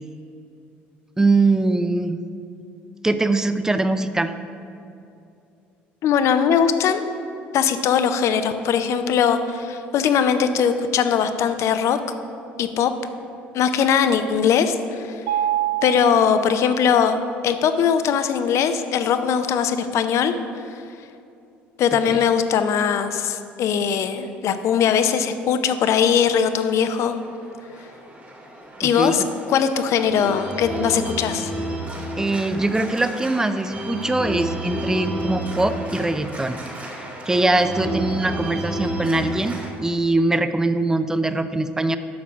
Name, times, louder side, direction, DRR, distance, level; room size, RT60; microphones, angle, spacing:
voice 1, 1.2-2.2 3.0-4.3 21.9-22.2 28.8-29.3 32.2-36.6 37.3-42.0, right 2 dB, 10° right, 10 dB, 0.5 m, -22 dB
voice 2, 6.0-7.0 7.5-12.0 12.6-12.9 13.5-15.2 15.8-17.2 17.4-20.3 21.8-27.2 28.8-29.2 29.5-31.5, left 7 dB, 55° left, 9 dB, 0.6 m, -20 dB
Mallet percussion, 15.3-17.2, right 12 dB, 70° right, 0.7 m, -27 dB
Organ, 26.7-39.7, right 1 dB, 30° right, 2.0 m, -32 dB
7.2 x 6.1 x 5.9 m, 2.6 s
hypercardioid pair, 60°, 6 cm